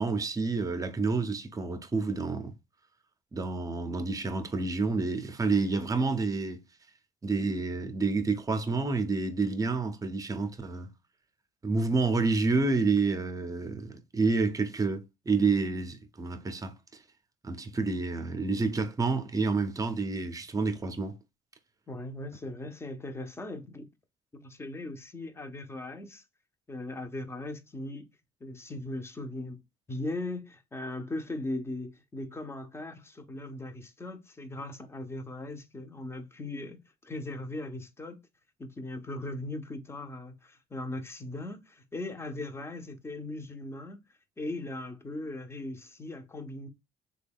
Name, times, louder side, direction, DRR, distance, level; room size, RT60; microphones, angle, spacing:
voice 1, 0.0-2.5 3.3-6.6 7.2-10.9 11.6-16.7 17.4-21.2, right 4 dB, 20° right, 0.7 m, -29 dB
voice 2, 21.9-23.9 24.3-26.2 26.7-28.1 28.4-29.6 29.9-38.2 38.6-44.0 44.4-46.7, left 2 dB, 15° left, 0.7 m, -39 dB
3.3 x 2.3 x 3.5 m
cardioid pair, 110°, 17 cm